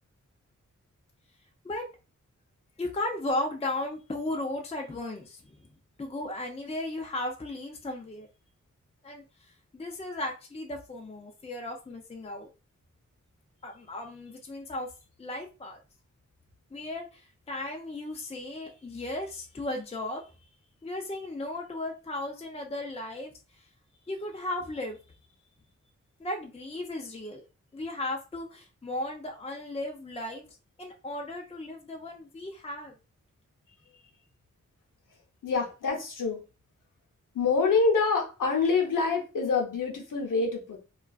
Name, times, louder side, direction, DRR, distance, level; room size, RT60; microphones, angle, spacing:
voice 1, 2.8-5.6 6.0-8.3 9.0-9.2 9.7-12.5 13.6-14.9 15.2-15.8 16.7-20.3 20.8-23.3 24.1-25.0 26.2-27.4 27.7-30.5 30.8-32.9, left 1 dB, 20° left, 1 dB, 0.5 m, -35 dB
voice 2, 35.4-36.4 37.3-40.8, left 4 dB, 85° left, 1 dB, 0.7 m, -26 dB
2.4 x 2.3 x 2.3 m, 0.31 s
cardioid pair, 45°, 31 cm